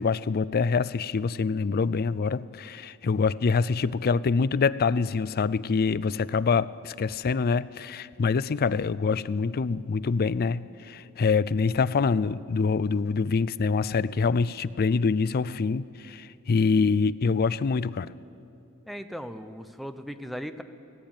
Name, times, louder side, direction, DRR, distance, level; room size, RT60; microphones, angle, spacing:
voice 1, 0.0-18.1, left 5 dB, 45° left, 17 dB, 0.4 m, -25 dB
voice 2, 18.9-20.6, equal, ahead, 8 dB, 0.7 m, -37 dB
17.0 x 17.0 x 9.0 m, 2.6 s
head